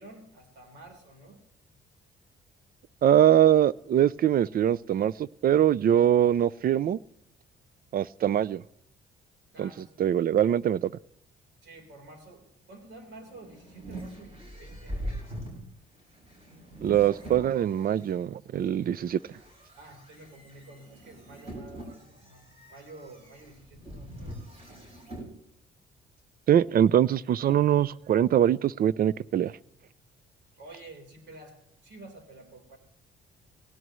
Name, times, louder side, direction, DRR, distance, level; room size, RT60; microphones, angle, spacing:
voice 1, 0.0-1.4 9.5-10.1 11.6-15.2 19.8-24.4 30.5-32.8, right 2 dB, 65° right, 3 dB, 4.0 m, -50 dB
voice 2, 3.0-7.0 7.9-8.6 9.6-9.7 10.0-10.9 16.8-19.2 26.5-29.5, right 10 dB, 50° right, 22 dB, 0.4 m, -23 dB
sound 1, 13.0-18.1 18.7-25.3, equal, 30° right, 7.5 m, -42 dB
18.0 x 17.5 x 3.1 m, 0.79 s
cardioid pair, 90°, 20 cm